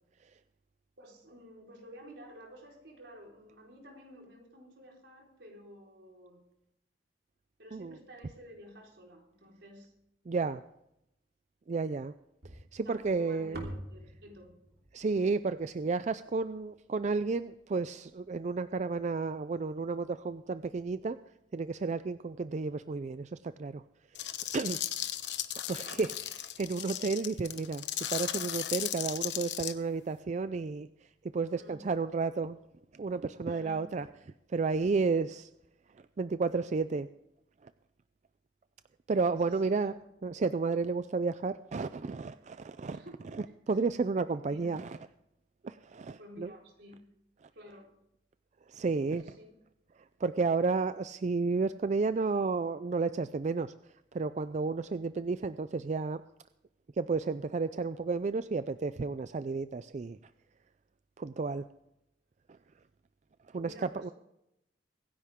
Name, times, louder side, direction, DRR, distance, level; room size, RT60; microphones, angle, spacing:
voice 1, 1.0-6.4 7.6-9.9 12.8-14.5 24.7-24.8 31.6-31.8 33.5-33.9 39.4-40.1 42.9-43.4 44.3-44.7 46.2-47.1 47.5-47.9 49.2-49.5 63.5-64.1, equal, 80° right, -1 dB, 4.4 m, -52 dB
voice 2, 10.3-10.6 11.7-12.1 12.4-13.6 14.9-21.2 21.5-23.8 24.1-24.3 24.5-24.8 25.7-32.6 32.9-34.1 34.5-35.5 35.9-37.1 37.6-37.7 39.1-39.9 40.2-43.0 43.3-45.0 45.6-46.5 47.4-47.5 48.7-49.4 50.0-56.2 57.0-60.2 61.2-61.7 63.5-64.1, right 4 dB, 40° right, 13 dB, 0.4 m, -32 dB
sound 1, 12.4-16.7, right 1 dB, 60° right, 3.0 m, -46 dB
sound 2, 24.2-29.7, left 11 dB, 80° left, 1.0 m, -36 dB
24.5 x 10.5 x 3.6 m, 0.85 s
head